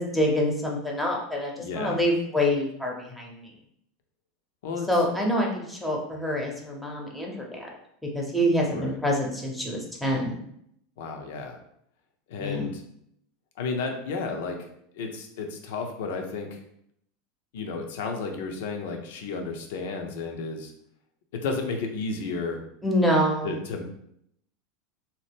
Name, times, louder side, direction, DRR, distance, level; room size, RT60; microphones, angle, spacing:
voice 1, 0.0-3.5 4.9-7.7 8.0-10.4 12.4-12.7 22.8-23.6, equal, 5° left, -1 dB, 0.7 m, -26 dB
voice 2, 1.6-2.0 4.6-4.9 8.7-9.0 11.0-11.6 12.3-12.8 13.6-14.6 14.9-16.6 17.5-20.7 21.3-22.6 23.4-23.8, left 4 dB, 75° left, 3 dB, 0.5 m, -32 dB
2.8 x 2.0 x 3.4 m, 0.73 s
hypercardioid pair, 95°, 0 cm